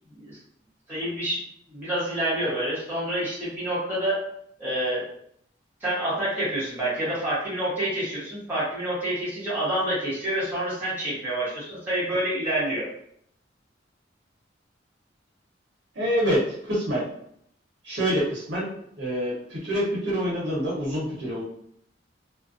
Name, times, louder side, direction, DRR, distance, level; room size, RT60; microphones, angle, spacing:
voice 1, 0.9-1.4 1.7-4.2 4.6-5.1 5.8-12.9, right 1 dB, 10° right, -10 dB, 1.0 m, -28 dB
voice 2, 15.9-17.0 17.8-18.7 19.0-21.4, equal, 65° right, -6 dB, 0.9 m, -26 dB
2.4 x 2.1 x 2.5 m, 0.69 s
head